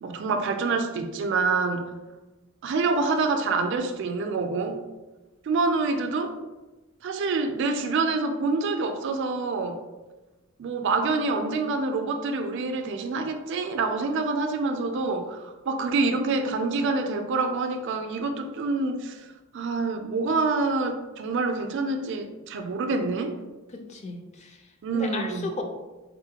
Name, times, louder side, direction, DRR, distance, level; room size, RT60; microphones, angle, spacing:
voice 1, 0.0-1.9 2.6-4.8 5.4-6.4 7.0-9.8 10.6-19.3 19.5-23.3 24.8-25.5, right 3 dB, 60° right, 6 dB, 0.4 m, -26 dB
voice 2, 23.7-25.6, left 3 dB, 30° left, 3 dB, 0.4 m, -36 dB
3.9 x 2.1 x 2.8 m, 1.1 s
head